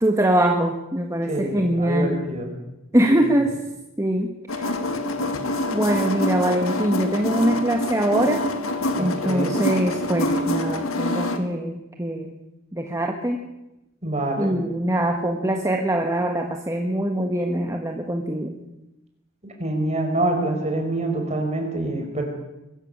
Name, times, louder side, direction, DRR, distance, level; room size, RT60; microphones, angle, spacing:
voice 1, 0.0-2.2 2.9-3.6 4.0-4.8 5.7-8.5 9.0-12.3 12.7-13.5 14.4-18.6, right 1 dB, 15° right, 3 dB, 1.5 m, -23 dB
voice 2, 1.3-2.5 3.0-3.2 9.0-9.6 14.0-14.6 19.6-22.2, right 1 dB, 35° right, 2 dB, 5.2 m, -26 dB
sound 1, 4.5-11.4, left 1 dB, 80° left, 2.1 m, -26 dB
22.0 x 13.5 x 8.7 m, 0.95 s
head